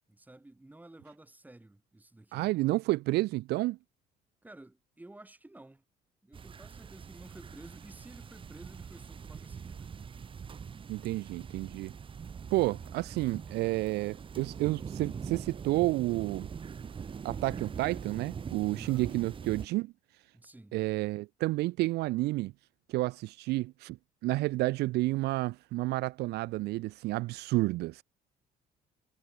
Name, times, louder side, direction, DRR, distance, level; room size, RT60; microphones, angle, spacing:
voice 1, 0.1-2.5 4.4-5.8 6.2-9.9 18.8-19.1 20.3-20.8, right 2 dB, 10° right, 5.0 m, -52 dB
voice 2, 2.3-3.8 10.9-11.9 12.5-16.5 17.2-19.9 20.7-22.5 22.9-24.0 24.2-28.0, right 19 dB, 75° right, 0.4 m, -30 dB
sound 1, 6.3-19.7, right 6 dB, 30° right, 1.0 m, -43 dB
cardioid pair, 110°, 17 cm